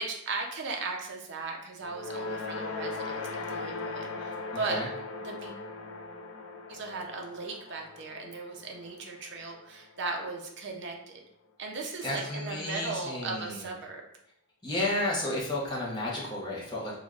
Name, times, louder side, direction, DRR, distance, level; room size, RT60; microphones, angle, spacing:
voice 1, 0.0-4.8 5.2-5.6 6.7-11.2 11.6-14.0, right 3 dB, 55° right, 1 dB, 0.5 m, -37 dB
sound 1, 1.8-10.2, left 3 dB, 90° left, 0.4 m, -39 dB
voice 2, 4.5-4.9 12.0-13.7 14.6-17.0, left 1 dB, 20° left, -6 dB, 0.8 m, -32 dB
3.3 x 2.5 x 2.4 m, 0.72 s
head